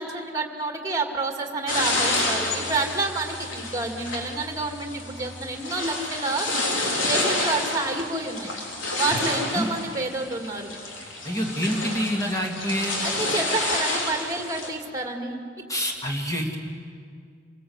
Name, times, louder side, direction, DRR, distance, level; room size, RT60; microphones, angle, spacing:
voice 1, 0.0-6.5 7.0-8.5 8.9-10.7 13.0-15.4, right 3 dB, 15° right, 3 dB, 2.1 m, -29 dB
sound 1, 1.7-14.7, left 2 dB, 80° left, 3.7 m, -29 dB
voice 2, 11.2-13.0 15.7-16.6, equal, 15° left, 0 dB, 2.8 m, -27 dB
27.5 x 18.0 x 8.1 m, 2.2 s
head